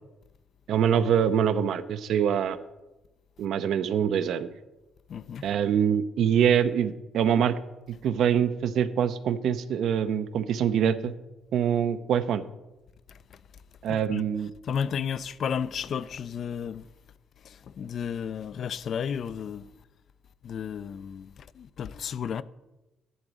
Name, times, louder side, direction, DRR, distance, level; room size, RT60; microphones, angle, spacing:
voice 1, 0.7-2.6 3.4-4.5 5.4-7.6 7.9-11.1 11.5-12.4 13.8-14.5, right 8 dB, 75° right, 0.6 m, -24 dB
voice 2, 5.1-5.5 13.9-14.2 14.7-16.8 17.4-19.7 20.4-22.4, left 7 dB, 60° left, 0.4 m, -33 dB
11.0 x 3.9 x 7.5 m
cardioid pair, 90°, 0 cm